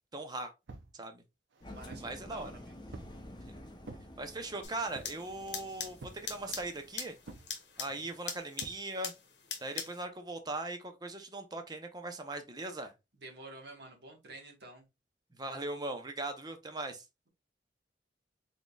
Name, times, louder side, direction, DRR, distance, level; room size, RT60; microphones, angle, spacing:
voice 1, 0.1-0.5 0.9-1.2 2.0-2.5 3.5-3.6 4.2-6.0 6.2-7.1 7.8-9.1 9.6-12.9 15.4-17.0, right 2 dB, 20° right, 0.6 m, -39 dB
sound 1, 0.7-0.9 1.5-2.2 2.9-3.2 3.8-4.1 4.9-5.3 6.0-6.3 7.3-7.5 8.6-8.8, right 3 dB, 90° right, 0.6 m, -48 dB
Engine, 1.6-7.4, left 1 dB, 25° left, 0.7 m, -51 dB
voice 2, 1.7-3.0 13.2-14.9, right 2 dB, 65° right, 1.4 m, -50 dB
sound 2, 4.6-10.0, left 6 dB, 70° left, 1.0 m, -43 dB
3.9 x 3.7 x 2.3 m
head